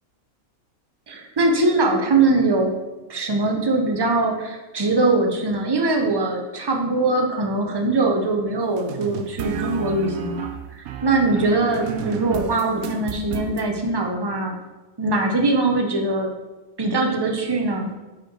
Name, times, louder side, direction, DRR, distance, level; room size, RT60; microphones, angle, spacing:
voice 1, 1.1-2.8 3.1-10.5 11.0-14.6 15.0-16.3 16.8-17.9, right 2 dB, 35° right, 2 dB, 0.3 m, -21 dB
sound 1, 8.8-13.6, right 8 dB, 80° right, 1.0 m, -31 dB
4.7 x 4.5 x 4.6 m, 1.1 s
omnidirectional pair, 1.5 m